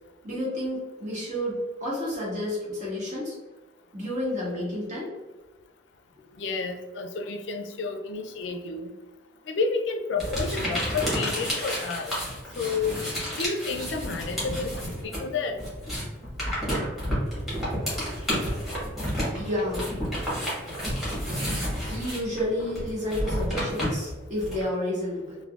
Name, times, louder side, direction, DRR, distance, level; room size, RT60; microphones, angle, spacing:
voice 1, 0.2-3.4 3.9-5.1 19.3-19.9 21.9-25.4, left 1 dB, 45° right, -7 dB, 1.3 m, -30 dB
voice 2, 6.4-8.9 9.5-12.1 12.6-12.9 13.3-15.6, left 4 dB, 70° left, 5 dB, 0.4 m, -30 dB
sound 1, 10.2-15.3 15.5-24.6, equal, ahead, 1.2 m, -30 dB
3.4 x 2.1 x 2.3 m, 1.2 s
head